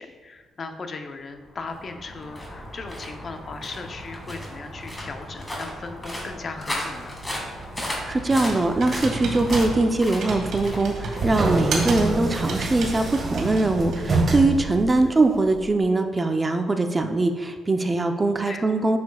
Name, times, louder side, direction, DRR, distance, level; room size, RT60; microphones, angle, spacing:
voice 1, 0.0-7.2 15.0-15.2 18.5-18.7, left 4 dB, 45° left, 6 dB, 0.7 m, -37 dB
sound 1, 1.4-14.8, left 1 dB, 15° left, 2.0 m, -36 dB
Computer keyboard, 7.2-14.2, right 3 dB, 70° right, 1.9 m, -33 dB
voice 2, 7.9-19.0, right 2 dB, 25° right, 6 dB, 0.6 m, -22 dB
sound 2, 10.8-15.7, right 2 dB, 40° right, 1.3 m, -27 dB
9.2 x 6.8 x 2.3 m, 1.5 s
cardioid pair, 90°, 0 cm